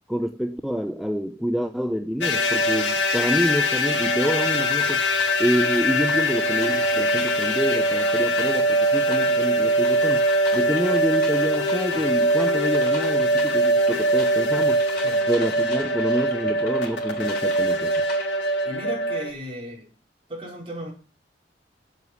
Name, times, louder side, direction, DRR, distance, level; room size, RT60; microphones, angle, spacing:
voice 1, 0.1-5.1 5.4-10.3 10.5-14.8 15.3-18.0, equal, ahead, 0.6 m, -27 dB
sound 1, 2.2-19.3, equal, 75° left, 1.9 m, -22 dB
sound 2, 3.9-18.2, left 3 dB, 55° left, 4.6 m, -41 dB
voice 2, 18.6-19.9 20.3-20.9, equal, 30° right, 4.7 m, -35 dB
7.9 x 7.5 x 8.1 m
head